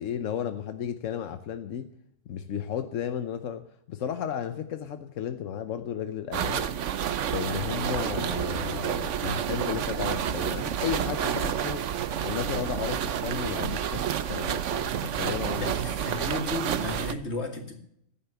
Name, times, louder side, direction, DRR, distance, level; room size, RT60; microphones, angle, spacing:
voice 1, 0.0-1.9 2.3-6.7 7.3-11.9 12.2-15.7, left 9 dB, 90° left, 9 dB, 1.2 m, -34 dB
sound 1, 6.3-17.1, right 9 dB, 75° right, 1.1 m, -29 dB
voice 2, 15.5-17.8, left 2 dB, 60° left, 5 dB, 2.2 m, -34 dB
14.5 x 10.0 x 6.9 m, 0.73 s
omnidirectional pair, 1.3 m